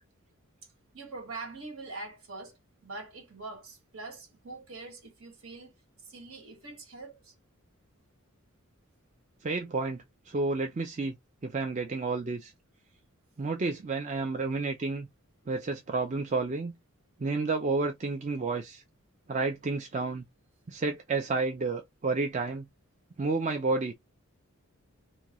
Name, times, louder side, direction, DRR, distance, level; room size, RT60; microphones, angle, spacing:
voice 1, 0.9-5.8 6.0-7.3, right 3 dB, 70° right, 1.1 m, -43 dB
voice 2, 9.4-10.0 10.3-11.1 11.4-12.5 13.4-15.1 15.5-16.7 17.2-18.8 19.3-20.2 20.7-22.7 23.2-23.9, right 3 dB, 35° right, 0.4 m, -30 dB
2.6 x 2.4 x 2.9 m
head